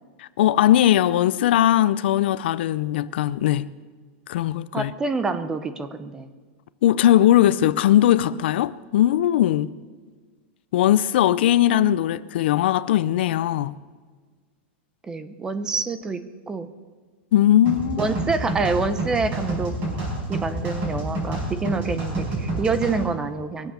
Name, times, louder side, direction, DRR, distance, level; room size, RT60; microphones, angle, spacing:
voice 1, 0.2-3.7 4.3-4.9 6.8-9.7 10.7-13.7 17.3-18.1, left 12 dB, 60° left, 0.5 m, -19 dB
voice 2, 4.7-6.3 15.0-16.2 16.5-16.7 18.0-19.7 20.3-23.7, right 4 dB, 10° right, 0.6 m, -27 dB
sound 1, 17.7-23.0, right 2 dB, 25° right, 4.9 m, -28 dB
22.0 x 7.9 x 6.9 m
supercardioid pair, 165°, 6 cm